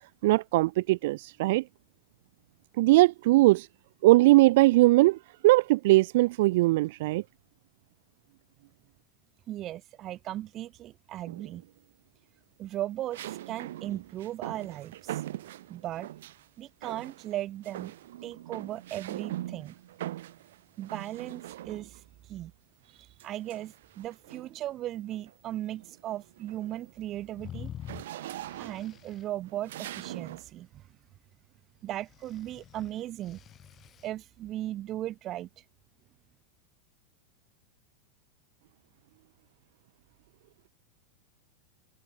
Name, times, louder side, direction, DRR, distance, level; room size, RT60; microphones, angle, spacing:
voice 1, 0.2-1.6 2.8-3.7 4.0-5.2 5.4-7.2, right 19 dB, 60° right, 0.8 m, -20 dB
voice 2, 9.5-11.6 12.6-15.2 15.7-16.1 16.6-17.9 18.2-19.7 20.8-22.0 22.3-22.5 22.9-27.7 28.6-30.8 31.8-33.4 34.0-35.5, right 13 dB, 30° right, 3.1 m, -37 dB
sound 1, 11.3-11.8 13.1-16.5 16.8-17.4 17.6-22.1 23.2-24.6 25.1-25.4 25.7-30.5, right 14 dB, 75° right, 6.9 m, -42 dB
sound 2, 27.4-29.2 32.0-34.1, left 10 dB, 25° left, 6.6 m, -46 dB
supercardioid pair, 150°, 0 cm